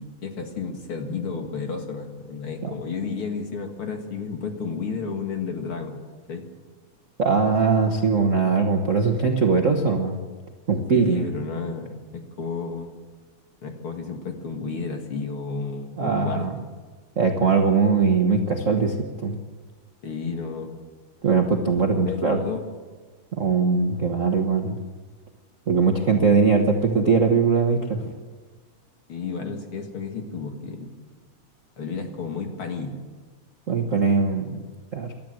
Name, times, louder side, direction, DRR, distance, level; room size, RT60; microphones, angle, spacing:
voice 1, 0.0-6.0 6.3-6.5 10.9-12.9 13.6-16.7 20.0-20.8 21.9-22.6 29.1-30.9 31.8-33.0, left 5 dB, 45° left, 4 dB, 2.5 m, -32 dB
voice 2, 7.2-10.2 10.7-11.3 16.0-16.5 17.2-19.0 19.2-19.3 21.2-22.4 23.4-24.8 25.7-28.0 33.7-34.6 34.9-35.1, right 5 dB, 75° right, 3 dB, 0.7 m, -21 dB
28.0 x 12.5 x 7.8 m, 1.4 s
omnidirectional pair, 3.6 m